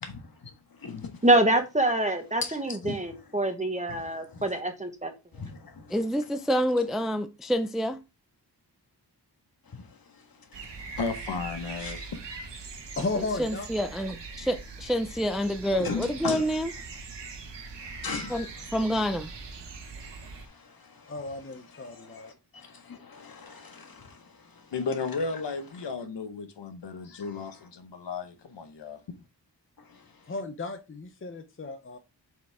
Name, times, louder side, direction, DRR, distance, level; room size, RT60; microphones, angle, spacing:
voice 1, 0.0-1.2 2.4-3.0 3.9-4.5 5.3-6.0 9.7-11.0 11.8-12.1 15.8-16.5 17.8-18.6 20.0-24.7 27.2-27.6 29.8-30.3, left 5 dB, 55° left, 1.6 m, -40 dB
voice 2, 1.2-5.1, right 1 dB, 15° right, 1.2 m, -25 dB
voice 3, 5.9-8.0 13.4-16.7 18.3-18.5 18.7-19.3, equal, ahead, 0.4 m, -27 dB
sound 1, 10.5-20.4, right 4 dB, 80° right, 1.7 m, -41 dB
voice 4, 11.0-12.4 24.7-29.0, left 4 dB, 80° left, 1.4 m, -34 dB
voice 5, 13.0-13.7 21.1-22.3 30.3-32.0, left 3 dB, 30° left, 0.7 m, -34 dB
7.1 x 6.4 x 3.5 m
wide cardioid pair, 170°, 42 cm